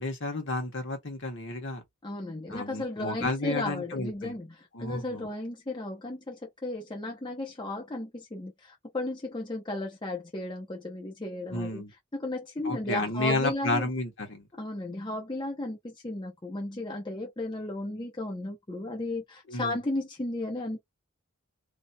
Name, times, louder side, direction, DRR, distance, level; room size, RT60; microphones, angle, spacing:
voice 1, 0.0-1.8 2.5-4.3 4.7-5.3 11.5-11.9 12.6-14.4 19.5-19.8, left 2 dB, 60° left, 1.2 m, -31 dB
voice 2, 2.0-11.8 12.1-13.9 14.6-20.8, left 2 dB, 20° left, 0.7 m, -34 dB
2.7 x 2.7 x 2.2 m
head